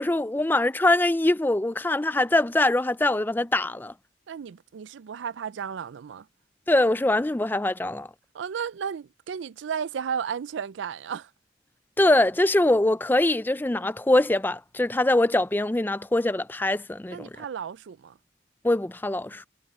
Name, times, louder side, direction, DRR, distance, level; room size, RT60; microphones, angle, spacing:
voice 1, 0.0-3.9 6.7-8.1 12.0-17.3 18.6-19.4, left 1 dB, 10° left, 0.4 m, -23 dB
voice 2, 4.3-6.3 8.3-11.3 17.1-18.1, right 7 dB, 85° right, 0.4 m, -33 dB
head